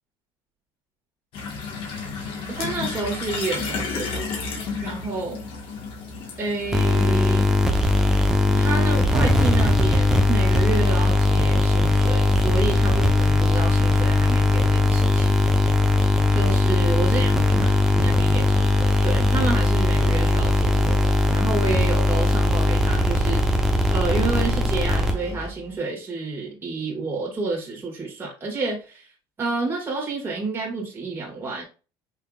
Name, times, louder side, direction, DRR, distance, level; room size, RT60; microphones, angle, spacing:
sound 1, 1.3-9.7, left 4 dB, 55° left, 1.5 m, -33 dB
voice 1, 2.5-4.5 4.8-5.5 6.4-7.5 8.5-15.3 16.3-29.1 29.4-31.6, right 3 dB, 20° right, 2.0 m, -30 dB
sound 2, 6.7-25.5, left 2 dB, 5° right, 0.8 m, -19 dB
5.7 x 3.6 x 2.4 m
cardioid pair, 120°, 11 cm